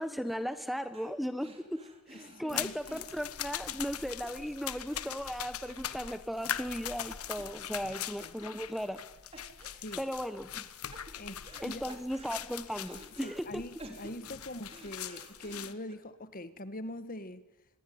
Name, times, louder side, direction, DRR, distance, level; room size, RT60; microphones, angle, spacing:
voice 1, 0.0-9.0 10.0-10.6 11.6-13.6, equal, ahead, 1.2 m, -37 dB
sound 1, 0.9-1.1 1.4-6.6 6.9-7.0 7.4-7.9 8.2-9.1 9.3-10.1 10.5-11.6 11.9-13.4 13.8-15.9, right 1 dB, 25° right, 3.7 m, -53 dB
voice 2, 2.1-2.7 8.2-8.3 9.4-10.0 11.1-11.8 13.1-17.4, left 1 dB, 40° left, 1.7 m, -43 dB
sound 2, 2.5-15.7, left 10 dB, 80° left, 1.3 m, -41 dB
26.5 x 21.0 x 9.7 m
head